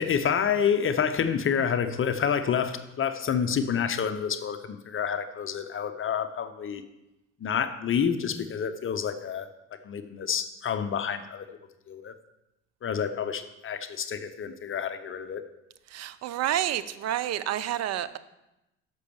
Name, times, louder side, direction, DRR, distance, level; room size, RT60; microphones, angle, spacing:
voice 1, 0.0-6.8 7.4-9.5 9.8-11.5 11.9-12.1 12.8-15.4, left 7 dB, 35° left, 10 dB, 0.8 m, -28 dB
voice 2, 15.9-18.2, right 11 dB, 45° right, 14 dB, 0.6 m, -29 dB
6.6 x 6.1 x 7.0 m, 0.92 s
supercardioid pair, 80°, 36 cm